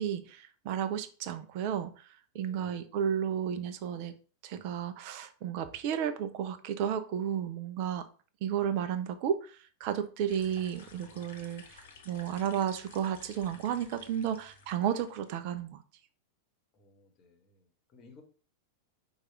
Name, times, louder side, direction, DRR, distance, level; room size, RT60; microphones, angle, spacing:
voice 1, 0.0-1.9 2.3-4.1 4.4-8.1 8.4-11.8 12.1-15.8, right 9 dB, 45° right, 0.4 m, -33 dB
voice 2, 2.4-2.9 16.7-18.2, left 3 dB, 35° left, 1.1 m, -58 dB
sound 1, 10.3-15.3, left 4 dB, 55° left, 0.8 m, -54 dB
4.7 x 2.4 x 4.4 m
figure-of-eight pair, 90°, 0 cm